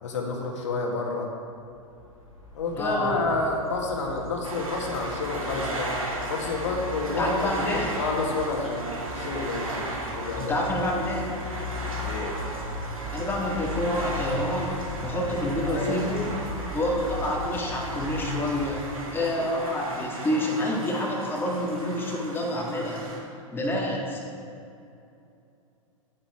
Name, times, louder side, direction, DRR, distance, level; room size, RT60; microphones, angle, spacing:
voice 1, 0.0-1.3 2.5-5.9 6.3-9.9 10.2-10.6 12.0-12.4 15.6-16.0, left 3 dB, 60° left, 0 dB, 2.0 m, -29 dB
sound 1, 1.7-19.3, left 3 dB, 85° left, 2.3 m, -39 dB
voice 2, 2.8-3.1 7.2-7.9 10.4-11.4 13.1-16.3 16.7-18.8 19.1-23.1 23.5-24.2, left 1 dB, 10° left, -2 dB, 2.0 m, -28 dB
sound 2, 4.4-23.2, right 2 dB, 80° right, 2.4 m, -35 dB
11.0 x 9.5 x 4.8 m, 2.6 s
figure-of-eight pair, 95°, 18 cm